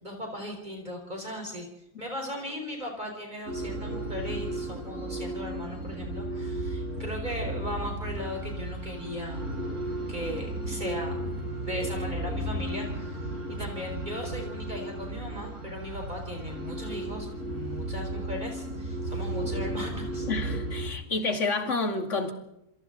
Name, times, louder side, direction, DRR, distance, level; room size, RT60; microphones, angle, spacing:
voice 1, 0.0-1.7 2.0-9.4 10.1-11.2 11.6-13.2 13.5-20.3, left 1 dB, 30° right, 4.8 m, -37 dB
sound 1, 3.5-20.9, right 1 dB, 85° right, 6.8 m, -34 dB
voice 2, 20.3-22.3, left 3 dB, 55° left, 2.6 m, -29 dB
27.5 x 27.0 x 4.1 m
omnidirectional pair, 1.5 m